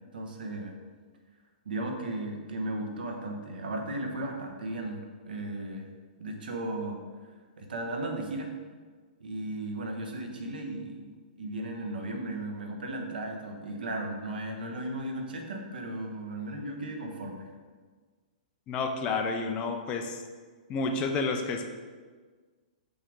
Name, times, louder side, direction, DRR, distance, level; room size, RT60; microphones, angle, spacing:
voice 1, 0.1-0.7 1.6-5.9 6.2-7.0 7.6-8.5 9.2-11.1 11.4-17.5, right 1 dB, 85° right, 3 dB, 1.3 m, -35 dB
voice 2, 18.7-20.2 20.7-21.7, left 4 dB, 20° left, 4 dB, 0.6 m, -30 dB
6.7 x 5.5 x 3.7 m, 1.5 s
hypercardioid pair, 160°, 5 cm